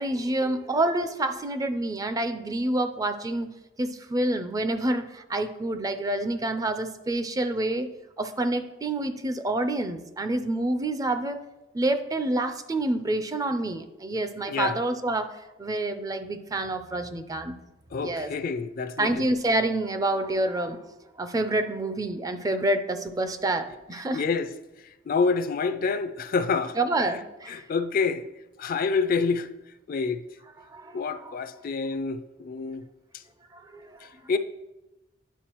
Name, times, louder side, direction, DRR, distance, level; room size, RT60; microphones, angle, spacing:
voice 1, 0.0-3.5 3.8-7.9 8.2-11.4 11.7-15.3 15.6-17.6 18.0-18.3 19.0-20.8 21.2-24.2 26.8-27.6 30.7-31.4 33.5-34.1, right 2 dB, 20° right, 0.4 m, -28 dB
voice 2, 14.5-14.8 17.9-19.2 24.1-24.5 25.1-26.8 27.5-28.3 28.6-29.5 29.9-30.2 30.9-32.8 34.0-34.4, left 4 dB, 50° left, 0.4 m, -27 dB
9.9 x 4.7 x 3.0 m
head